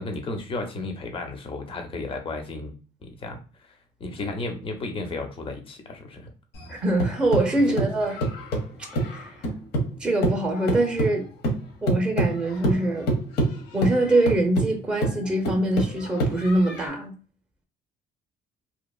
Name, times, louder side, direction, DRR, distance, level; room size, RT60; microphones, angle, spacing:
voice 1, 0.0-2.7 3.0-3.4 4.0-6.3 7.5-7.8 8.2-8.3, left 2 dB, 30° left, 0.7 m, -33 dB
sound 1, 6.5-10.0 10.2-16.9, right 1 dB, 75° left, 0.9 m, -27 dB
voice 2, 6.7-8.2 9.0-9.3 10.0-11.3 11.8-13.1 13.7-17.1, right 1 dB, 5° right, 0.7 m, -24 dB
2.8 x 2.3 x 2.3 m
cardioid pair, 110°, 17 cm